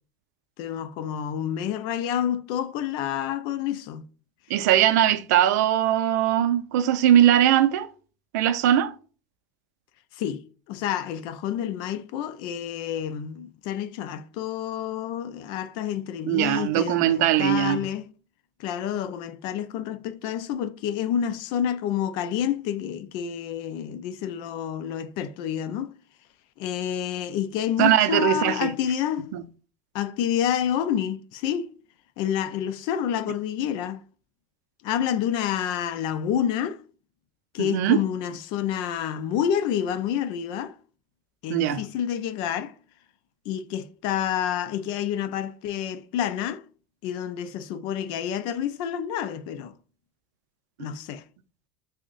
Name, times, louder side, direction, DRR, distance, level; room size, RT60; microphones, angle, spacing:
voice 1, 0.6-4.0 10.1-18.0 18.6-25.9 26.6-29.3 29.9-31.7 32.2-34.0 34.8-36.8 37.5-40.7 41.4-42.7 43.5-46.6 47.0-49.7 50.8-51.2, left 9 dB, 60° left, 0.4 m, -28 dB
voice 2, 4.5-7.9 8.3-8.9 16.3-17.8 27.8-28.7 29.3-29.4 37.6-38.0 41.5-41.8, right 11 dB, 85° right, 0.4 m, -20 dB
3.4 x 2.1 x 3.8 m
supercardioid pair, 125°, 9 cm